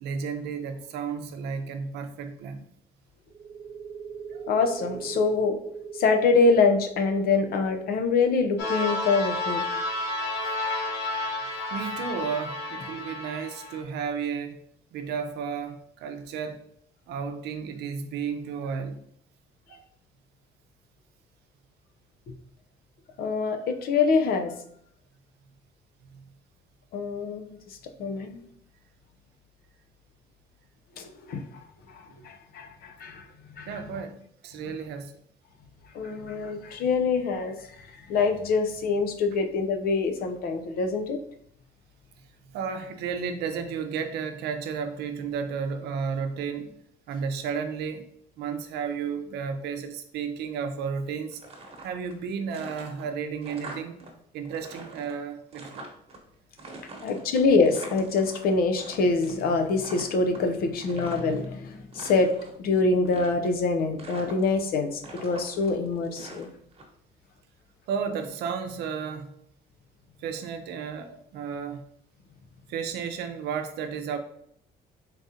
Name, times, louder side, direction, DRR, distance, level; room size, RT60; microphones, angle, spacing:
voice 1, 0.0-2.6 4.3-4.5 11.6-14.6 14.9-16.6 17.1-19.0 19.7-19.8 26.1-26.2 33.7-35.1 42.5-46.7 47.1-48.0 48.4-51.4 51.8-54.0 54.3-55.9 67.9-69.3 70.2-71.8 72.7-74.2, right 6 dB, 80° right, 8 dB, 0.6 m, -33 dB
sound 1, 3.3-10.7, right 6 dB, 15° right, 0.6 m, -41 dB
voice 2, 4.5-5.6 5.9-9.6 23.2-24.5 26.9-27.5 28.0-28.4 31.0-31.5 31.9-33.3 33.6-33.8 35.9-41.2 57.0-62.3 62.6-66.5, left 4 dB, 65° left, 5 dB, 0.6 m, -25 dB
sound 2, 8.6-13.8, left 2 dB, 85° left, 0.9 m, -31 dB
sound 3, 51.3-52.2 52.5-54.1 54.4-56.2 56.6-58.9 59.2-59.5 59.8-61.4 61.8-62.6 63.0-63.7 64.0-64.7 65.0-66.8, right 2 dB, 35° right, 1.1 m, -43 dB
3.9 x 3.6 x 2.7 m, 0.68 s
cardioid pair, 110°, 17 cm